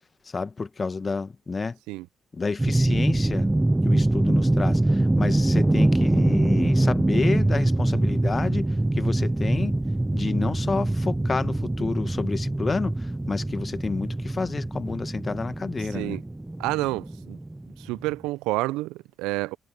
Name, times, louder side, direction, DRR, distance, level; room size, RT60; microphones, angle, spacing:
voice 1, 0.2-1.8 2.3-3.5 3.8-9.8 10.1-16.2, left 4 dB, 35° left, 1.6 m, -30 dB
sound 1, 2.6-18.1, right 1 dB, 15° right, 0.6 m, -24 dB
voice 2, 15.8-16.2 16.6-17.4 17.8-19.6, right 20 dB, 75° right, 0.9 m, -29 dB
hypercardioid pair, 45°, 0 cm